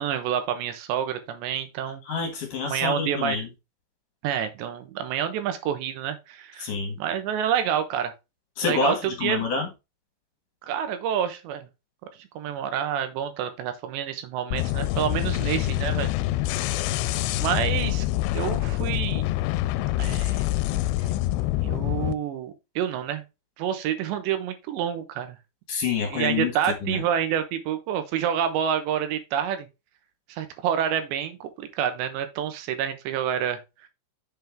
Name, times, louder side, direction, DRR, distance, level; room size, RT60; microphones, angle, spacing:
voice 1, 0.0-2.0 2.6-3.4 4.2-6.7 7.0-8.1 8.6-9.4 10.7-11.7 12.4-16.1 17.4-18.1 18.3-19.2 20.0-20.4 21.6-23.2 23.6-25.4 26.1-29.7 30.3-33.6, right 9 dB, 90° right, 3.3 m, -28 dB
voice 2, 2.1-3.5 6.6-7.0 8.6-9.7 25.7-26.5 26.8-27.0, left 5 dB, 60° left, 2.8 m, -27 dB
sound 1, 14.5-22.1, left 16 dB, 85° left, 2.7 m, -26 dB
7.5 x 5.8 x 3.5 m
omnidirectional pair, 5.0 m